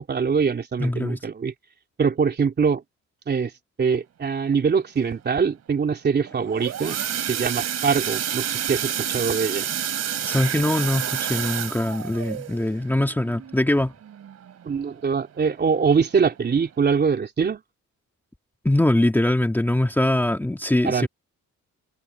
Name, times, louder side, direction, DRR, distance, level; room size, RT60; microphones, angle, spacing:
voice 1, 0.0-1.5 2.0-2.8 3.3-3.5 3.8-7.0 7.3-9.7 14.6-17.6 20.8-21.1, right 5 dB, 35° right, 3.2 m, -23 dB
voice 2, 0.8-1.2 10.3-13.9 18.6-21.1, left 1 dB, 5° left, 2.0 m, -22 dB
sound 1, 6.3-14.9 15.4-15.6 15.9-16.0 16.5-16.6, right 9 dB, 60° right, 3.7 m, -29 dB
wide cardioid pair, 170°, 30 cm